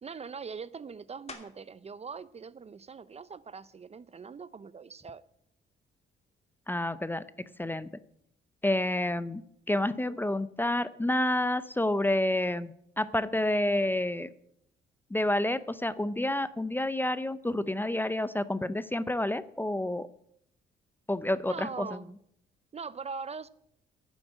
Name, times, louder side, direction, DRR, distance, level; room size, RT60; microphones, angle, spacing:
voice 1, 0.0-5.2 21.5-22.1 22.7-23.5, right 5 dB, 30° right, 17 dB, 0.5 m, -41 dB
sound 1, 1.3-1.9 2.4-6.9 7.4-12.5 12.8-18.5, left 3 dB, 30° left, 2.8 m, -58 dB
voice 2, 6.7-7.9 8.6-9.4 9.7-14.3 15.1-20.1 21.1-22.0, left 1 dB, 10° left, 15 dB, 0.6 m, -29 dB
11.5 x 7.3 x 9.0 m, 0.73 s
cardioid pair, 90°, 20 cm